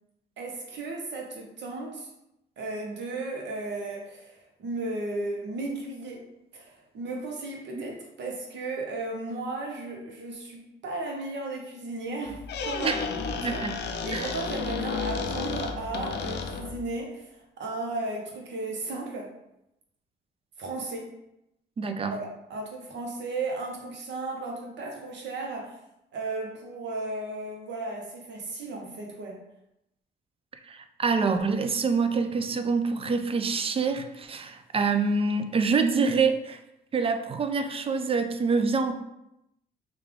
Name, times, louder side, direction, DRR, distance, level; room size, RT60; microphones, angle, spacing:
voice 1, 0.4-2.1 2.6-13.0 13.2-13.6 14.0-19.3 20.6-21.1 22.1-25.8 26.1-29.4, right 2 dB, 65° right, 0 dB, 0.9 m, -35 dB
Squeak, 12.3-16.9, left 5 dB, 60° left, 0.5 m, -32 dB
voice 2, 21.8-22.2 30.7-36.6 36.9-39.0, right 4 dB, 30° right, 8 dB, 0.3 m, -26 dB
3.3 x 2.4 x 3.4 m, 0.85 s
cardioid pair, 90°, 20 cm